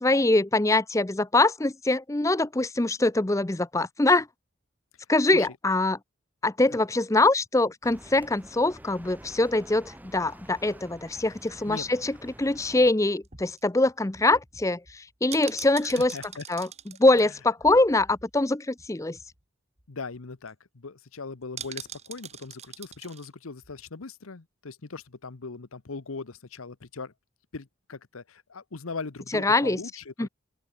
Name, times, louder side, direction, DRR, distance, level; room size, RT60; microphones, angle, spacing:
voice 1, 0.0-4.3 5.1-6.0 6.4-16.2 16.5-16.7 17.0-19.2 29.3-29.8 30.2-30.3, left 2 dB, 15° left, 0.5 m, -23 dB
sound 1, 7.8-12.9, right 1 dB, 10° right, 3.1 m, -48 dB
sound 2, 13.2-18.5 18.8-18.9 19.1-19.4 19.8-19.9 20.1-20.5 21.6-23.3 23.6-23.7, right 8 dB, 30° right, 3.9 m, -44 dB
voice 2, 15.8-16.4 17.2-17.3 19.9-27.1 27.5-30.3, left 4 dB, 85° left, 1.0 m, -40 dB
open air
head